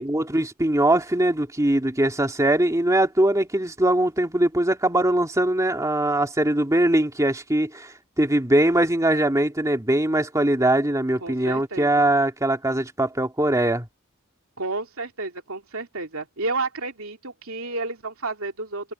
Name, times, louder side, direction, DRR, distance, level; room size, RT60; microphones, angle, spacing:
voice 1, 0.0-13.9, right 1 dB, 15° right, 2.4 m, -21 dB
voice 2, 11.2-12.1 14.6-18.9, right 3 dB, 75° right, 2.9 m, -31 dB
head